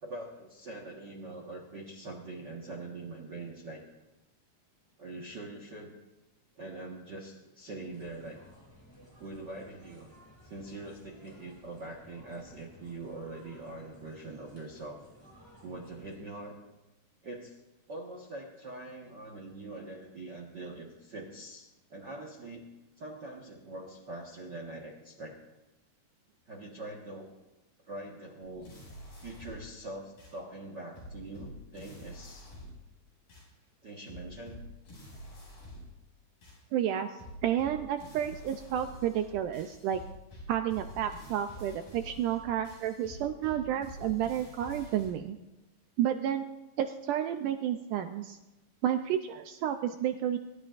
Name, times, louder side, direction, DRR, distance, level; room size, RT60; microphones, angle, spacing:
voice 1, 0.0-3.8 5.0-5.9 6.6-8.4 9.2-10.1 10.4-15.0 15.6-16.6 17.2-17.6 17.9-22.7 23.0-25.4 26.5-27.3 27.9-28.7 29.2-32.5 33.8-34.6, right 2 dB, 60° right, -1 dB, 1.1 m, -43 dB
sound 1, 7.8-16.2, equal, 10° left, 2.0 m, -57 dB
sound 2, 28.4-29.7 30.2-30.3 31.0-32.9 33.3-33.5 34.1-36.0 36.4-36.6 37.2-45.1, left 1 dB, 70° left, 8.0 m, -48 dB
voice 2, 36.7-37.1 37.4-40.0 40.5-45.4 46.0-46.5 46.8-48.4 48.8-50.4, right 10 dB, 80° right, 7 dB, 1.9 m, -31 dB
24.0 x 13.0 x 2.5 m, 1.0 s
omnidirectional pair, 4.1 m